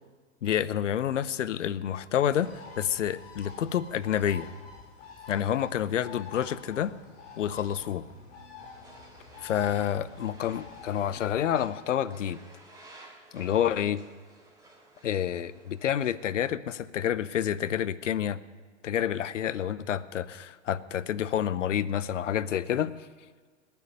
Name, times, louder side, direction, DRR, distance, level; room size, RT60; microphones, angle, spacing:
voice 1, 0.4-4.5 5.3-6.9 7.4-8.0 9.4-12.4 13.3-14.0 15.0-18.4 18.8-23.1, left 10 dB, 80° left, 17 dB, 0.9 m, -28 dB
Bird, 2.3-11.5, left 4 dB, 50° left, 5.7 m, -48 dB
sound 1, 8.7-16.2, right 2 dB, 10° right, 3.8 m, -54 dB
20.5 x 7.1 x 9.5 m, 1.5 s
hypercardioid pair, 115°, 37 cm